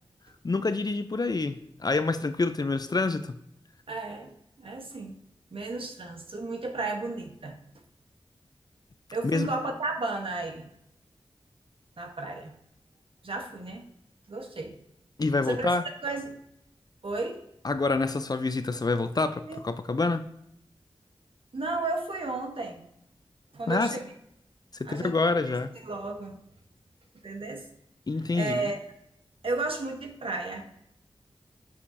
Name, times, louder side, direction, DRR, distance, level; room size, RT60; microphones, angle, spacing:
voice 1, 0.4-3.4 9.2-9.5 15.2-15.8 17.6-20.3 23.7-23.9 24.7-25.7 28.1-28.7, left 3 dB, 40° left, 0.4 m, -27 dB
voice 2, 3.9-5.1 5.5-7.6 9.1-10.7 12.0-12.5 13.2-13.8 14.3-14.7 15.4-15.7 16.0-16.4 17.0-17.4 19.5-19.6 21.5-22.8 23.5-24.1 24.8-25.5 25.8-26.4 27.2-27.7 28.3-28.8 29.4-30.6, right 3 dB, 65° right, 1.1 m, -33 dB
6.3 x 5.8 x 2.7 m
wide cardioid pair, 60°, 10 cm